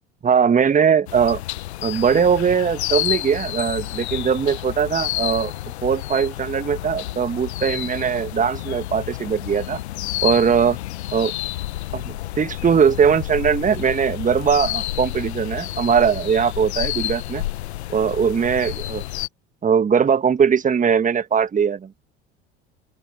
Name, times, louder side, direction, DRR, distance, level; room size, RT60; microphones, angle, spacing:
voice 1, 0.2-1.4 1.8-5.5 5.8-9.8 10.2-10.8 11.1-11.3 11.9-17.4 17.9-19.0 19.6-21.9, right 7 dB, 25° right, 1.5 m, -20 dB
sound 1, 1.1-19.3, left 15 dB, 70° left, 1.1 m, -30 dB
sound 2, 1.3-1.4 1.8-2.4 3.1-3.2 3.6-4.1 4.8-4.9 5.3-5.5, left 16 dB, 45° left, 2.1 m, -39 dB
open air
figure-of-eight pair, 70°, 34 cm